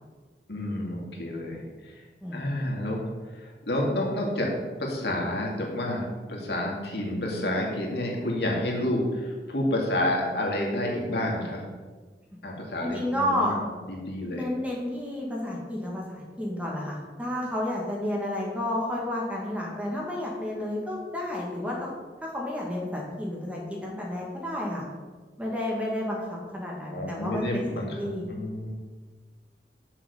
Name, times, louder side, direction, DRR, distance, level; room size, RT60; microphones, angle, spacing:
voice 1, 0.5-2.0 2.3-4.5 4.8-11.7 12.4-13.5 13.9-14.4 26.9-28.7, left 1 dB, 70° left, -1 dB, 2.2 m, -29 dB
voice 2, 12.8-13.6 14.3-21.9 22.2-24.8 25.4-28.2, left 1 dB, 10° right, -3 dB, 1.9 m, -31 dB
7.3 x 6.8 x 6.8 m, 1.4 s
head